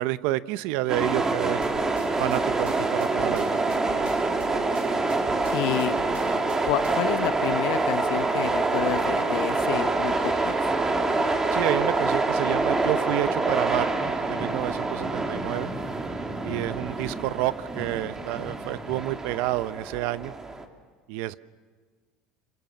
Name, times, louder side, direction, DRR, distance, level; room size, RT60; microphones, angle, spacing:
voice 1, 0.0-1.6 2.2-3.6 11.5-15.7 16.4-20.3 21.1-21.4, right 16 dB, 75° right, 15 dB, 0.8 m, -29 dB
sound 1, 0.9-20.6, right 3 dB, 20° right, 2.6 m, -26 dB
sound 2, 1.6-7.2, right 4 dB, 50° right, 6.3 m, -43 dB
voice 2, 5.5-6.0 6.6-10.6, left 16 dB, 75° left, 11 dB, 1.2 m, -29 dB
27.0 x 23.0 x 7.4 m, 1.5 s
supercardioid pair, 100°, 3 cm